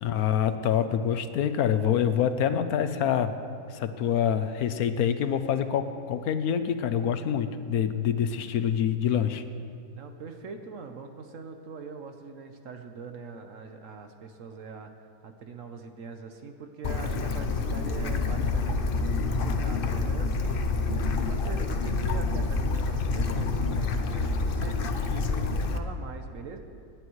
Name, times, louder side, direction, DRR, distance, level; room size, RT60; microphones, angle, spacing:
voice 1, 0.0-3.4 3.7-9.4, left 8 dB, 75° left, 9 dB, 1.1 m, -26 dB
voice 2, 9.9-14.9 15.2-26.6, right 5 dB, 60° right, 6 dB, 1.2 m, -43 dB
Bird / Stream, 16.8-25.8, left 3 dB, 50° left, 0.7 m, -27 dB
27.0 x 9.5 x 3.1 m, 2.4 s
omnidirectional pair, 1.6 m